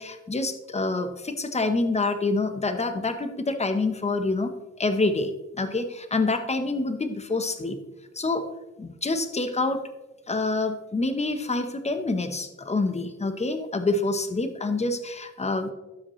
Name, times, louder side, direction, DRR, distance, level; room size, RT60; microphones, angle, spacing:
voice 1, 0.0-4.5 4.8-7.8 8.1-8.5 8.8-9.8 10.3-15.7, left 3 dB, 20° left, 8 dB, 1.0 m, -27 dB
12.0 x 7.8 x 3.2 m, 1.0 s
cardioid pair, 95°, 29 cm